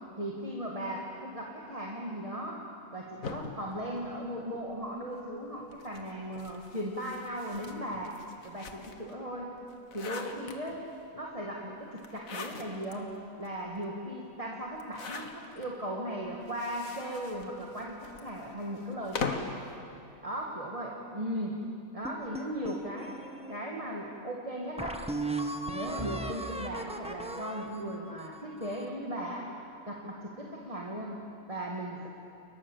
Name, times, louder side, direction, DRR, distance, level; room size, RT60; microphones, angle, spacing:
voice 1, 0.2-2.6 2.9-8.2 8.4-9.5 9.9-10.8 11.1-13.1 13.4-19.4 20.2-21.6 21.9-23.1 23.5-25.0 25.7-29.5 29.9-31.2 31.5-32.1, equal, 25° right, -2 dB, 2.2 m, -37 dB
sound 1, 3.2-4.8 5.7-9.1 9.6-11.0 12.0-13.0 13.4-13.5 13.8-13.9 14.7-15.7 16.4-19.6, left 4 dB, 75° left, 2.0 m, -41 dB
sound 2, 22.0-23.6 24.2-24.3 24.8-29.0, right 2 dB, 5° right, 1.2 m, -37 dB
30.0 x 22.0 x 7.4 m, 2.6 s
omnidirectional pair, 1.4 m